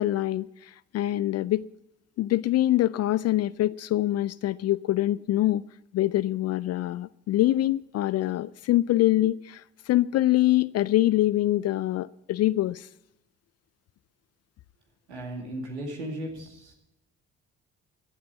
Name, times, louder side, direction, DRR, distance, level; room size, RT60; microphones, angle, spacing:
voice 1, 0.0-1.6 2.2-5.6 5.9-12.9, left 15 dB, 50° left, 0.4 m, -24 dB
voice 2, 15.1-16.7, right 1 dB, 90° right, 2.4 m, -36 dB
15.0 x 8.7 x 7.1 m
hypercardioid pair, 45°, 33 cm